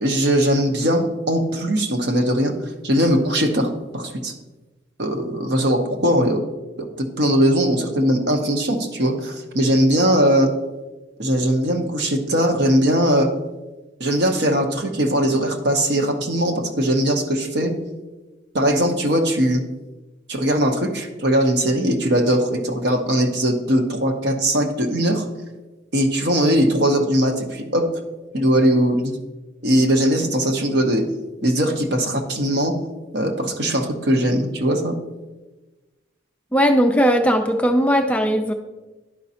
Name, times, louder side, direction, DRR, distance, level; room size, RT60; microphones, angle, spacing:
voice 1, 0.0-2.5 2.8-4.3 5.0-6.4 6.8-10.5 11.2-13.3 14.0-17.7 18.5-19.6 20.3-25.2 25.9-27.9 28.3-29.2 29.6-31.0 31.4-32.7 33.1-34.9, equal, 60° right, 5 dB, 0.9 m, -20 dB
voice 2, 36.5-38.5, equal, 5° left, 4 dB, 0.3 m, -18 dB
11.0 x 5.1 x 2.8 m, 1.2 s
head